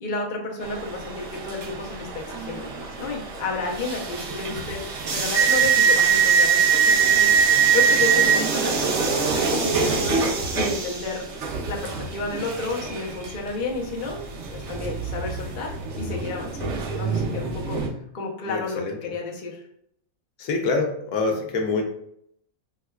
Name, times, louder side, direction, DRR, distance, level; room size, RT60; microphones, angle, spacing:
voice 1, 0.0-10.2 10.5-11.3 11.7-14.2 14.5-17.8 18.1-19.6, left 3 dB, 55° left, 0 dB, 0.5 m, -31 dB
sound 1, 0.6-17.9, right 6 dB, 60° right, 0.9 m, -23 dB
voice 2, 18.5-19.0 20.4-21.8, left 3 dB, 70° left, 2 dB, 1.0 m, -25 dB
4.5 x 2.2 x 2.2 m, 0.72 s
omnidirectional pair, 1.6 m